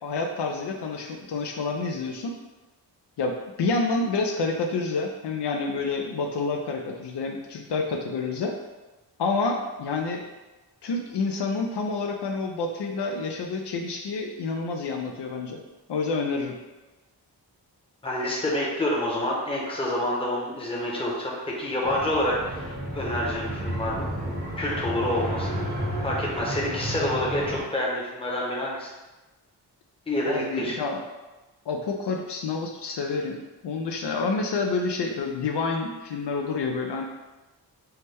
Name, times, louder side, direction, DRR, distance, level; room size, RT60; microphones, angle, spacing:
voice 1, 0.0-2.3 3.2-8.5 9.2-10.2 10.8-15.6 15.9-16.6 30.3-31.0 31.7-37.1, left 3 dB, 75° left, 2 dB, 0.5 m, -28 dB
voice 2, 18.0-24.1 24.6-25.6 26.0-28.9 30.1-30.8, left 1 dB, 15° left, -4 dB, 0.8 m, -28 dB
sound 1, 21.8-27.6, right 1 dB, 25° right, 0.8 m, -32 dB
5.6 x 2.2 x 3.3 m, 1.1 s
wide cardioid pair, 140°, 41 cm